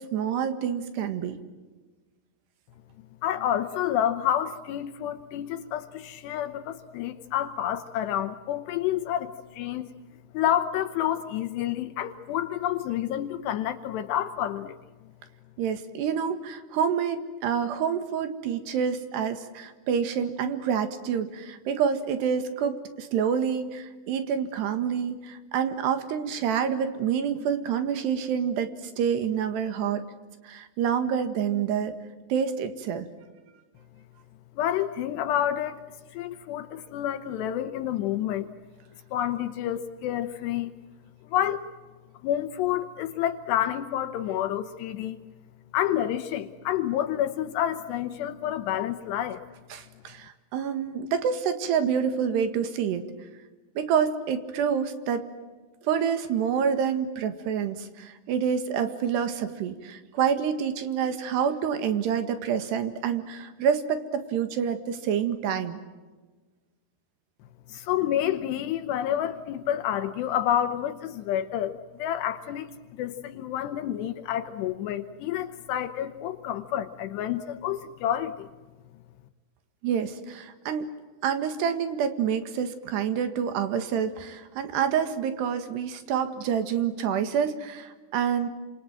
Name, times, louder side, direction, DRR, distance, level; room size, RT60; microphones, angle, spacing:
voice 1, 0.0-1.4 15.6-28.7 29.0-30.0 30.4-32.0 32.3-33.1 49.7-53.1 53.8-55.2 55.8-65.8 79.8-80.9 81.2-88.5, right 7 dB, 75° right, 9 dB, 3.9 m, -27 dB
voice 2, 3.2-9.9 10.3-14.8 34.6-35.8 36.1-38.5 39.1-40.7 41.3-41.7 42.2-45.2 45.7-49.4 67.7-78.5, left 11 dB, 80° left, 8 dB, 3.1 m, -29 dB
28.5 x 27.0 x 7.7 m, 1.3 s
omnidirectional pair, 5.0 m